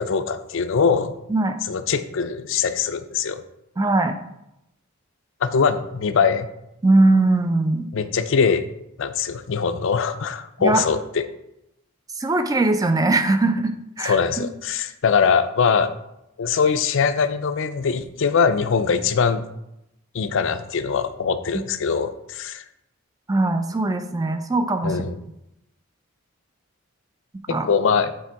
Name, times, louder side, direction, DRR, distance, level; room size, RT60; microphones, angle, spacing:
voice 1, 0.0-1.1 1.7-3.4 5.4-6.5 7.9-8.7 9.0-11.3 14.0-15.9 16.4-19.4 20.1-22.6 24.8-25.2 27.5-28.1, left 6 dB, 65° left, 11 dB, 0.5 m, -22 dB
voice 2, 3.8-4.2 6.8-7.9 10.6-10.8 12.2-14.5 23.3-25.0 27.5-27.7, right 2 dB, 15° right, 7 dB, 0.4 m, -20 dB
8.6 x 3.3 x 4.7 m, 0.85 s
head